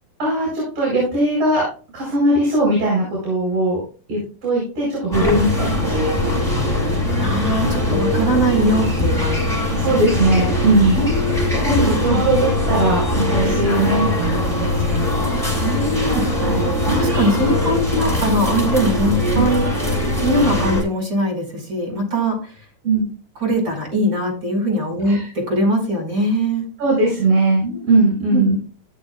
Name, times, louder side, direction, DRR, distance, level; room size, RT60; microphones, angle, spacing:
voice 1, 0.2-1.7 1.9-3.8 4.1-6.3 8.2-8.3 9.7-11.0 11.6-15.1 16.4-16.6 19.3-19.4 22.8-23.0 25.0-25.3 26.8-28.5, right 2 dB, 65° right, -3 dB, 6.0 m, -19 dB
sound 1, 5.1-20.8, left 1 dB, ahead, 5.6 m, -21 dB
voice 2, 7.2-9.6 10.9-12.2 15.6-16.3 16.6-19.7 20.2-22.6 23.4-26.7 28.3-28.6, equal, 30° right, -1 dB, 6.2 m, -21 dB
16.5 x 7.2 x 2.4 m, 0.37 s
omnidirectional pair, 3.7 m